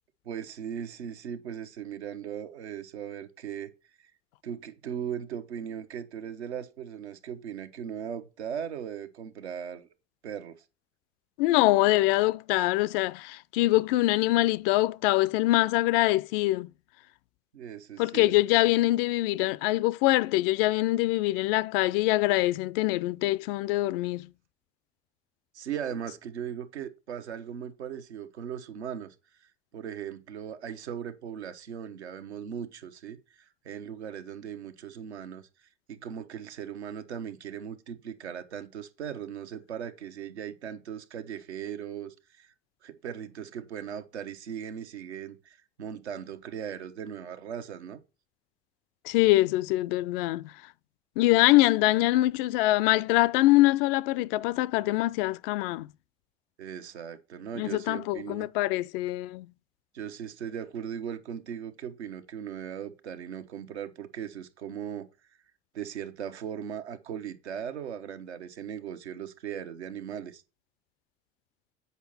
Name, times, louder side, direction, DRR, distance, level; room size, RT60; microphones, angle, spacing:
voice 1, 0.2-3.7 4.4-9.9 10.2-10.6 17.5-18.3 25.5-29.1 29.7-35.5 35.9-42.5 42.8-48.0 56.6-58.5 59.9-65.1 65.7-70.4, right 8 dB, 75° right, 0.9 m, -38 dB
voice 2, 11.4-16.7 18.0-24.3 49.0-50.5 51.2-55.9 57.6-59.5, left 18 dB, 55° left, 0.4 m, -24 dB
8.2 x 5.2 x 4.2 m
figure-of-eight pair, 60°, 34 cm